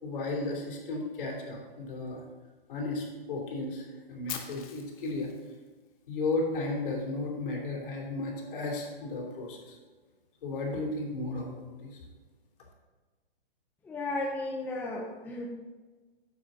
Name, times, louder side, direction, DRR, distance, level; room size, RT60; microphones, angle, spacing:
voice 1, 0.0-2.2 2.7-5.3 6.1-9.8 10.4-11.9, left 2 dB, 60° left, -1 dB, 3.0 m, -34 dB
Fire, 4.3-6.3, left 9 dB, 40° left, 1.1 m, -43 dB
voice 2, 13.8-15.5, left 2 dB, 5° left, -2 dB, 0.6 m, -34 dB
9.9 x 7.1 x 3.8 m, 1.3 s
hypercardioid pair, 145°, 29 cm